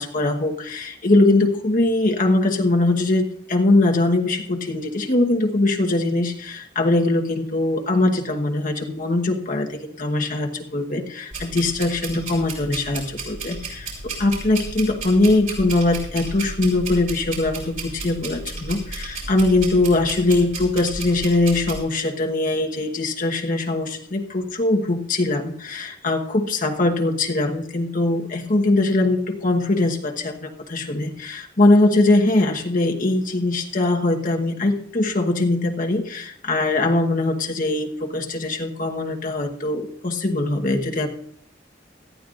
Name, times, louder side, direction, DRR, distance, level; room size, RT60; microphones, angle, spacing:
voice 1, 0.0-41.1, left 2 dB, 50° left, 3 dB, 1.3 m, -21 dB
sound 1, 11.3-21.8, right 3 dB, 50° right, 5.3 m, -34 dB
18.0 x 13.5 x 2.5 m, 0.68 s
head